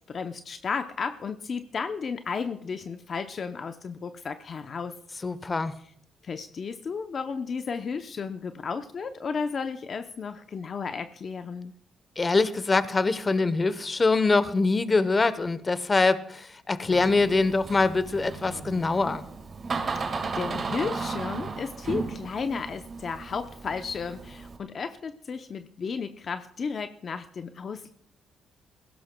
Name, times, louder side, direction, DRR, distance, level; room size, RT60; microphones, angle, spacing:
voice 1, 0.1-5.0 6.2-11.7 19.9-27.9, left 5 dB, 45° left, 8 dB, 0.7 m, -33 dB
voice 2, 5.2-5.8 12.2-19.2, left 3 dB, 30° left, 14 dB, 0.9 m, -24 dB
Door, 16.9-24.6, right 4 dB, 45° right, 1.8 m, -35 dB
21.5 x 16.5 x 2.3 m, 0.65 s
cardioid pair, 90°, 0 cm